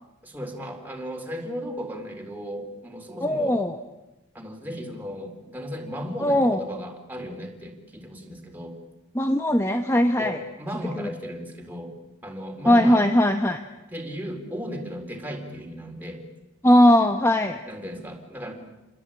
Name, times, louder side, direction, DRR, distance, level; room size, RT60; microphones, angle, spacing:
voice 1, 0.2-3.6 4.3-8.8 10.2-11.9 12.2-13.0 13.9-16.2 17.7-18.5, equal, 10° right, 2 dB, 3.9 m, -35 dB
voice 2, 3.2-3.8 6.2-6.6 9.1-10.4 11.0-11.1 12.7-13.6 16.6-17.6, left 1 dB, 10° left, 6 dB, 1.0 m, -19 dB
29.5 x 21.5 x 8.9 m, 1.0 s
head